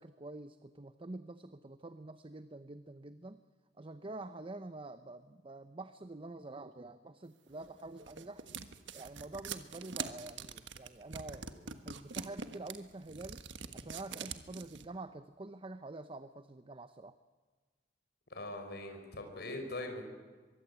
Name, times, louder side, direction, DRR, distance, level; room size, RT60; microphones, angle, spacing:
voice 1, 0.0-3.4 3.8-8.4 8.9-13.4 13.7-17.2, right 2 dB, 30° right, 11 dB, 0.7 m, -47 dB
sound 1, 7.6-14.8, right 6 dB, 90° right, 1.5 m, -44 dB
voice 2, 18.3-20.0, left 2 dB, 65° left, 5 dB, 4.6 m, -41 dB
23.5 x 22.5 x 8.2 m, 1.4 s
head